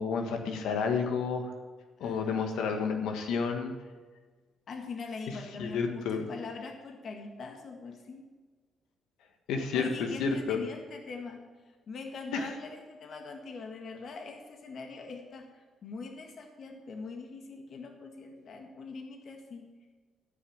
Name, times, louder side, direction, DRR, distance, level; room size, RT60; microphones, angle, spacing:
voice 1, 0.0-1.5 2.0-3.7 5.3-6.3 9.5-10.6 12.3-12.5, left 5 dB, 90° left, 4 dB, 1.6 m, -31 dB
voice 2, 2.0-2.4 4.7-8.3 9.7-11.4 11.9-19.7, left 4 dB, 55° left, 3 dB, 1.8 m, -42 dB
14.0 x 6.0 x 8.8 m, 1.4 s
cardioid pair, 90°, 0 cm